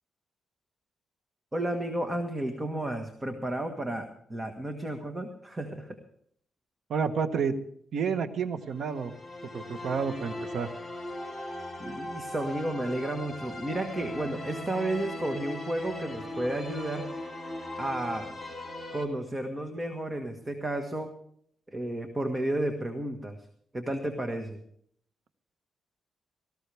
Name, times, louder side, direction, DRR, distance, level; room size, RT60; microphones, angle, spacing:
voice 1, 1.5-6.0 11.8-17.1 17.8-18.3 18.9-21.1 21.7-23.4 23.7-24.6, right 1 dB, 20° right, 5 dB, 1.6 m, -32 dB
voice 2, 6.9-7.6 7.9-9.1 9.5-10.7, right 6 dB, 65° right, 9 dB, 1.3 m, -30 dB
sound 1, 8.6-19.1, left 1 dB, ahead, 2.7 m, -39 dB
18.5 x 15.0 x 3.5 m, 0.65 s
cardioid pair, 125°, 0 cm